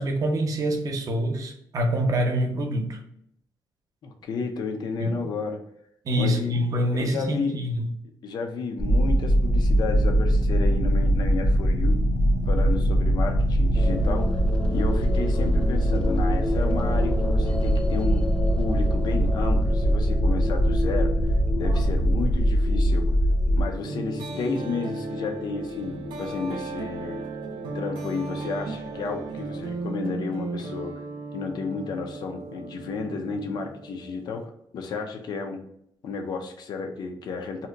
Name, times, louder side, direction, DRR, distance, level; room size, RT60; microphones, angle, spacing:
voice 1, 0.0-3.0 5.0-5.1 6.0-7.9 21.6-21.8 23.5-23.6, equal, 45° right, 3 dB, 0.7 m, -26 dB
voice 2, 4.0-5.6 6.1-6.5 6.9-7.6 8.2-12.0 12.5-14.4 14.7-18.3 18.6-21.1 21.6-23.1 23.5-27.2 27.7-30.9 31.3-35.6 36.0-37.7, left 4 dB, 60° left, 4 dB, 0.5 m, -32 dB
sound 1, 8.8-23.7, equal, 75° left, 1.0 m, -22 dB
sound 2, 13.7-30.2, left 2 dB, 10° left, 0.4 m, -34 dB
sound 3, 23.9-34.4, right 3 dB, 85° right, 0.5 m, -36 dB
2.7 x 2.1 x 3.7 m, 0.70 s
cardioid pair, 130°, 8 cm